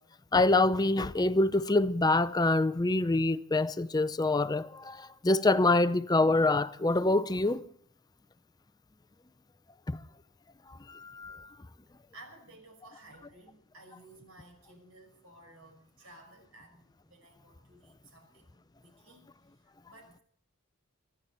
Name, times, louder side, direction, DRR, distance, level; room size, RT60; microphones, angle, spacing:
voice 1, 0.3-5.0 5.2-7.6 9.9-10.0 11.0-11.4, left 2 dB, 20° left, 0.5 m, -25 dB
voice 2, 12.1-20.2, right 2 dB, 70° right, 5.7 m, -55 dB
25.0 x 11.0 x 4.4 m
head